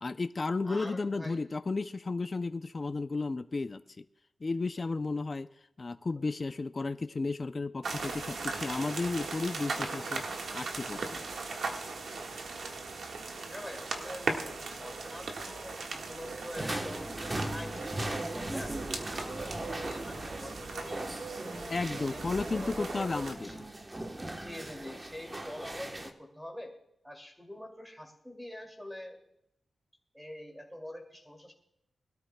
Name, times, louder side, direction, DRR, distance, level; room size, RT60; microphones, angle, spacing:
voice 1, 0.0-4.0 4.4-5.5 5.8-10.2 10.5-11.2 21.7-23.5, left 3 dB, 35° left, 10 dB, 0.4 m, -33 dB
voice 2, 0.6-1.5 13.5-17.1 17.5-18.7 19.1-21.1 21.4-23.6 24.3-26.7 27.0-29.2 30.1-31.5, left 1 dB, ahead, 3 dB, 2.4 m, -45 dB
sound 1, 7.8-23.4, right 3 dB, 75° right, 1.5 m, -38 dB
sound 2, 16.6-26.1, right 1 dB, 20° right, 1.1 m, -39 dB
21.5 x 13.0 x 2.2 m, 0.79 s
wide cardioid pair, 115°, 0 cm